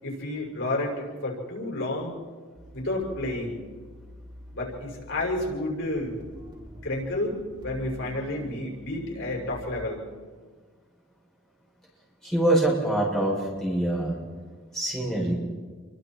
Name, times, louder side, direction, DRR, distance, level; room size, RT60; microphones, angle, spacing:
voice 1, 0.0-2.2 2.7-3.6 4.5-6.2 6.8-10.0, left 1 dB, 80° left, -1 dB, 6.4 m, -30 dB
sound 1, 2.5-9.6, right 1 dB, 25° right, 4.0 m, -46 dB
voice 2, 12.2-14.2 14.7-15.3, right 1 dB, 5° left, -5 dB, 7.3 m, -24 dB
29.5 x 23.5 x 4.6 m, 1.5 s
head